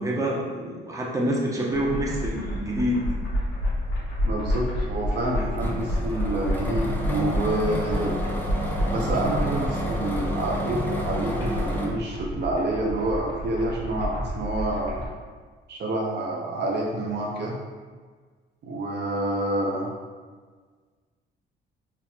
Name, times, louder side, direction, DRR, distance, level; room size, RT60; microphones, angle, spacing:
voice 1, 0.0-3.0, equal, 15° right, -3 dB, 0.9 m, -27 dB
sound 1, 1.7-15.1, left 1 dB, 80° left, 1.3 m, -30 dB
voice 2, 4.2-8.2 8.9-15.0 15.7-17.6 18.6-19.9, right 2 dB, 60° right, -2 dB, 0.7 m, -28 dB
sound 2, 5.6-11.9, equal, 10° left, 0.6 m, -30 dB
4.6 x 3.6 x 2.3 m, 1.5 s
cardioid pair, 90°, 20 cm